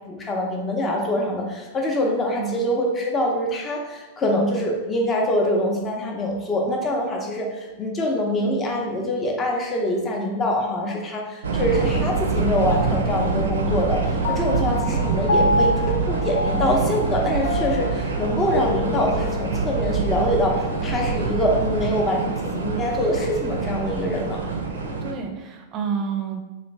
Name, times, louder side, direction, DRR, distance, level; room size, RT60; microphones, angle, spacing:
voice 1, 0.1-24.4, left 1 dB, 25° left, 0 dB, 0.7 m, -24 dB
voice 2, 2.3-2.7 25.0-26.4, right 6 dB, 40° right, 4 dB, 0.5 m, -29 dB
sound 1, 11.4-25.1, right 4 dB, 85° right, 0.5 m, -25 dB
Piano, 14.2-20.9, left 2 dB, 75° left, 0.3 m, -28 dB
3.1 x 2.5 x 3.2 m, 1.2 s
hypercardioid pair, 105°, 0 cm